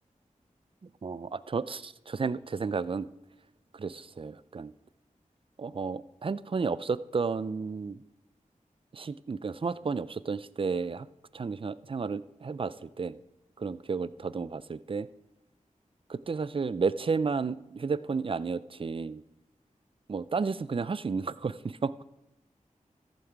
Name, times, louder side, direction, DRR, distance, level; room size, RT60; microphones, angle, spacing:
voice 1, 1.0-3.1 3.7-4.7 5.6-8.0 8.9-11.1 11.3-13.2 13.6-15.1 16.1-19.2 20.1-22.0, right 5 dB, 40° right, 17 dB, 0.4 m, -32 dB
14.0 x 7.3 x 4.6 m, 0.87 s
wide cardioid pair, 70°, 14 cm